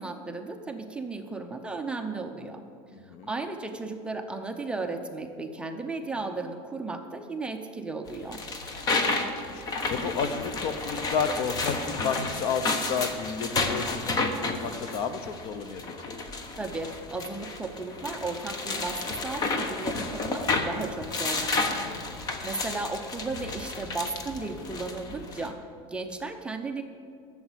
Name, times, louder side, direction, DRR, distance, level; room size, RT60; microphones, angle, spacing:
voice 1, 0.0-2.6 3.0-8.4 16.6-22.0 22.4-25.6 25.9-26.8, right 3 dB, 10° right, 4 dB, 0.6 m, -35 dB
voice 2, 2.9-3.3 9.0-9.6 9.9-16.1 21.7-22.3, left 6 dB, 50° left, 11 dB, 0.7 m, -32 dB
sound 1, 8.1-25.5, left 3 dB, 30° left, 1.0 m, -31 dB
13.0 x 7.1 x 8.0 m, 2.5 s
cardioid pair, 160°, 13 cm